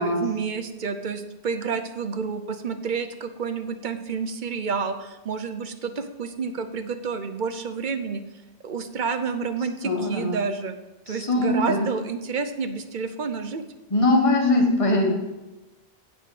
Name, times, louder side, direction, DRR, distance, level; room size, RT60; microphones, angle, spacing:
voice 1, 0.0-8.2 8.6-10.8 11.1-13.6, right 5 dB, 55° right, 9 dB, 0.8 m, -29 dB
voice 2, 9.8-10.4 11.1-11.9 13.9-15.1, left 2 dB, 30° left, 2 dB, 1.4 m, -21 dB
9.4 x 5.0 x 7.8 m, 1.1 s
omnidirectional pair, 1.0 m